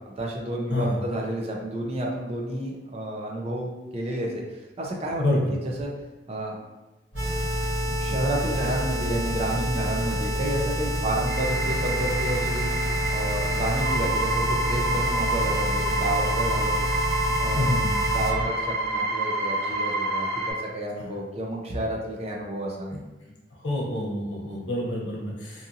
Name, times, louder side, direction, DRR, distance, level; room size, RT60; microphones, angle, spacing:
voice 1, 0.2-3.7 3.9-4.4 4.8-5.9 6.3-6.6 8.0-12.8 13.1-16.8 17.4-17.7 18.1-23.0, right 1 dB, 35° right, -2 dB, 0.5 m, -30 dB
voice 2, 5.2-5.5 17.6-18.0 22.9-23.0 23.6-25.7, left 1 dB, 80° left, -3 dB, 0.8 m, -27 dB
sound 1, 7.1-18.5, right 1 dB, 45° left, 1.1 m, -29 dB
sound 2, 7.2-18.3, left 1 dB, 90° right, 0.9 m, -32 dB
sound 3, 11.3-20.5, right 2 dB, 70° right, 1.1 m, -28 dB
2.7 x 2.5 x 2.6 m, 1.1 s
head